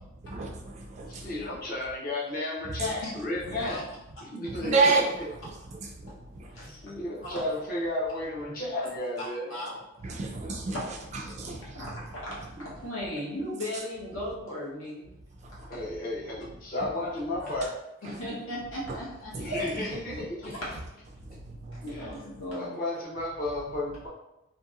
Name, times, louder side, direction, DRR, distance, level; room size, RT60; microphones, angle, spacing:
voice 1, 0.2-1.3 2.7-2.9 4.5-5.2 5.4-6.7 10.0-10.8 11.1-11.9 15.4-15.7 16.8-16.9 18.0-18.2 19.3-20.0 21.2-21.8, right 3 dB, 35° right, 0.3 m, -30 dB
voice 2, 1.1-3.8 4.2-4.9 6.6-9.5 15.7-17.7 19.4-20.5 21.9-22.1 22.5-24.1, left 1 dB, 45° left, 0.7 m, -33 dB
voice 3, 6.5-6.9 7.2-7.4 9.2-10.2 10.7-10.8 11.4-15.1 15.5-15.8 17.4-17.5 18.0-19.3 20.4-21.0 21.7-22.7, left 1 dB, 75° left, 1.0 m, -37 dB
2.8 x 2.6 x 2.4 m
head